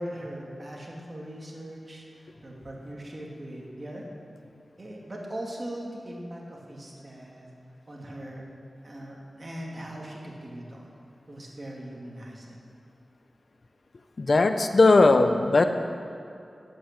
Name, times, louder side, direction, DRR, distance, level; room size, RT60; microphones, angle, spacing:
voice 1, 0.0-4.1 4.8-7.5 7.9-8.4 8.8-10.9 11.3-12.6, right 1 dB, 40° right, -2 dB, 2.3 m, -40 dB
voice 2, 14.2-15.6, left 3 dB, 60° left, 8 dB, 0.6 m, -18 dB
8.4 x 7.9 x 8.7 m, 2.6 s
cardioid pair, 50°, 0 cm